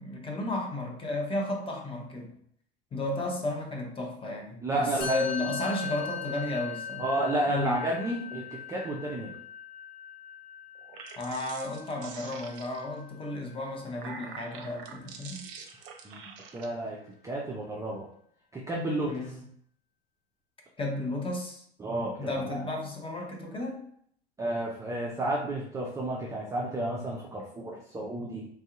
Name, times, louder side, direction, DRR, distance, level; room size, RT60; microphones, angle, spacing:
voice 1, 0.0-2.3 2.9-7.1 7.5-7.8 11.2-15.4 19.1-19.4 20.8-21.6 22.2-23.8, left 2 dB, 15° left, 1 dB, 0.7 m, -33 dB
voice 2, 4.6-5.2 7.0-9.4 16.0-16.3 16.5-18.1 18.5-19.2 21.8-22.6 24.4-28.5, right 1 dB, 10° right, -3 dB, 0.4 m, -31 dB
Musical instrument, 5.0-14.5, left 5 dB, 65° left, 1.4 m, -40 dB
sound 1, 10.8-13.0 13.7-16.7, right 6 dB, 60° right, 0.6 m, -45 dB
3.3 x 2.6 x 2.4 m, 0.65 s
figure-of-eight pair, 75°, 31 cm